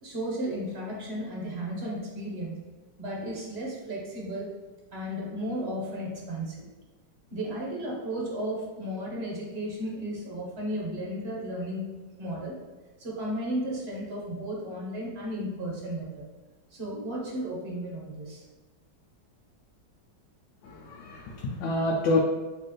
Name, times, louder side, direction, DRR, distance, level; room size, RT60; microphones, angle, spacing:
voice 1, 0.0-2.7 3.0-4.6 4.9-6.7 7.3-12.6 13.0-16.3 16.7-18.4, right 1 dB, 40° right, -3 dB, 1.2 m, -34 dB
voice 2, 20.6-22.2, left 2 dB, 85° left, -1 dB, 1.3 m, -27 dB
4.1 x 3.4 x 3.1 m, 1.2 s
omnidirectional pair, 1.9 m